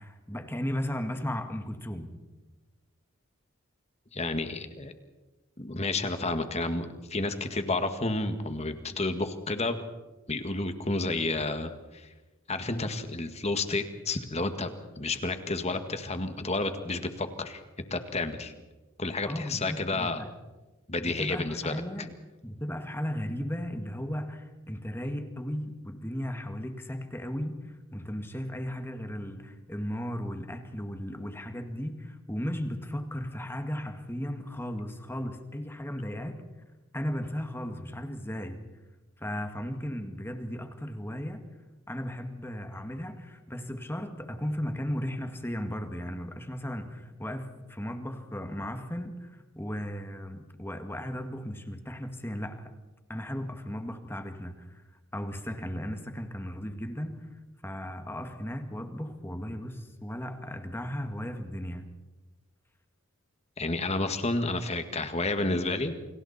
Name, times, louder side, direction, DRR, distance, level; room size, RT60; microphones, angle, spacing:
voice 1, 0.0-2.1 19.3-20.3 21.0-22.1 22.4-36.4 36.9-38.6 39.2-41.5 41.9-52.7 53.1-54.8 55.1-57.3 57.6-61.9, equal, 10° left, 6 dB, 2.0 m, -36 dB
voice 2, 4.1-4.9 5.6-9.8 10.3-12.1 12.5-17.6 17.9-18.5 19.0-20.2 20.9-21.8 63.6-65.9, left 2 dB, 30° left, 8 dB, 1.9 m, -31 dB
29.0 x 26.0 x 4.3 m, 1.2 s
head